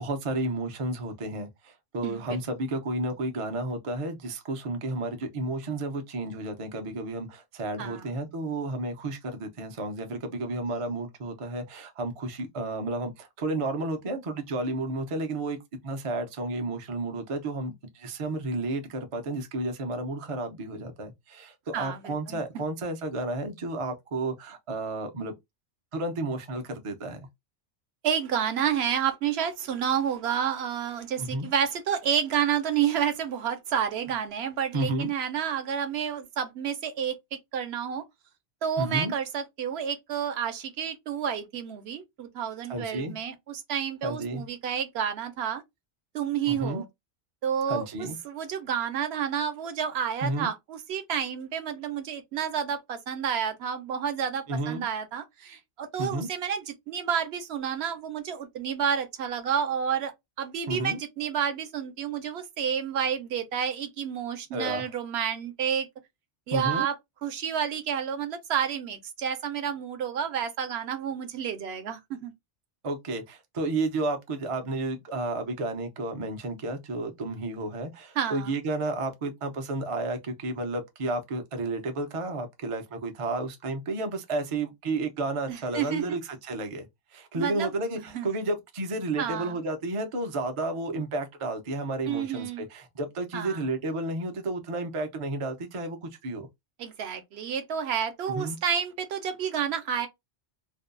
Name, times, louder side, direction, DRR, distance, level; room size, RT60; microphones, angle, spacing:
voice 1, 0.0-15.6 15.8-25.3 25.9-27.2 31.2-31.5 34.7-35.1 38.8-39.1 42.7-43.2 44.0-44.4 46.5-46.8 47.7-48.2 50.2-50.5 54.5-54.8 56.0-56.3 60.7-61.0 64.5-64.9 66.5-66.9 72.8-86.9 87.1-96.5 98.3-98.6, right 2 dB, 45° right, 0.4 m, -32 dB
voice 2, 2.0-2.4 7.8-8.1 21.7-22.4 28.0-38.0 38.6-45.6 46.1-46.9 47.4-65.9 66.5-66.9 67.2-72.3 78.2-78.5 85.5-86.2 87.3-87.7 88.1-88.3 89.2-89.6 92.1-92.6 93.3-93.6 96.8-100.1, right 8 dB, 70° right, 0.8 m, -30 dB
2.6 x 2.2 x 2.4 m
omnidirectional pair, 1.2 m